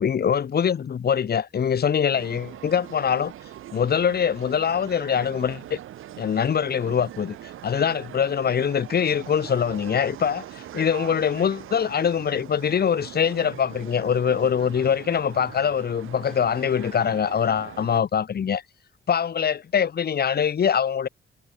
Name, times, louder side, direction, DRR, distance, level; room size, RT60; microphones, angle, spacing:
voice 1, 0.0-3.3 3.7-5.8 6.2-7.4 7.6-18.6 19.1-21.1, left 7 dB, 50° left, 1.9 m, -23 dB
sound 1, 2.1-18.0, right 12 dB, 90° right, 4.1 m, -41 dB
cardioid pair, 100°, 20 cm